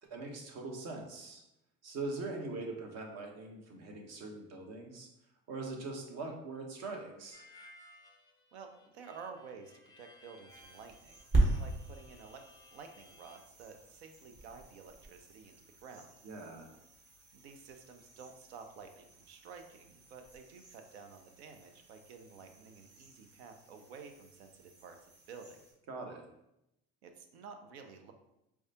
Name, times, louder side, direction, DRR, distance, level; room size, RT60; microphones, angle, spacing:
voice 1, 0.0-1.4 1.8-5.1 5.5-7.4 16.2-16.7 25.9-26.2, right 3 dB, 55° right, 2 dB, 1.0 m, -42 dB
Harmonica, 7.3-13.4, left 2 dB, 15° left, 0.5 m, -59 dB
voice 2, 8.5-16.1 17.3-25.0 25.3-25.6 27.0-28.1, right 5 dB, 85° right, 6 dB, 0.6 m, -51 dB
sound 1, 10.5-25.7, right 2 dB, 35° right, 1.2 m, -40 dB
4.7 x 2.3 x 2.7 m, 0.85 s
hypercardioid pair, 75°, 31 cm